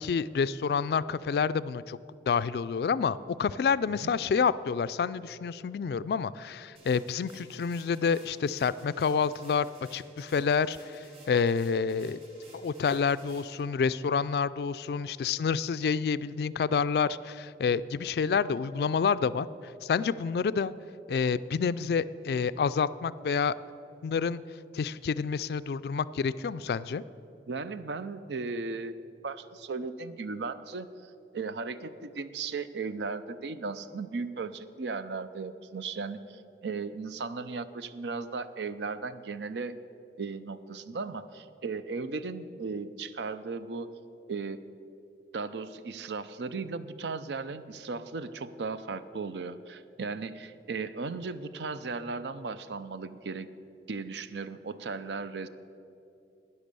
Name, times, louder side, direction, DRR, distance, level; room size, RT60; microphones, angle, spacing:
voice 1, 0.0-2.0 2.3-9.7 9.9-12.2 12.5-19.5 19.8-20.7 21.1-23.6 24.0-24.4 24.7-27.0, left 6 dB, 60° left, 16 dB, 0.3 m, -28 dB
sound 1, 6.8-13.6, right 2 dB, 35° right, 3.6 m, -55 dB
voice 2, 27.5-28.9 29.2-39.8 40.2-43.9 44.3-44.6 45.3-53.5 53.9-55.5, right 4 dB, 80° right, 13 dB, 0.5 m, -36 dB
11.5 x 9.7 x 6.8 m, 2.7 s
head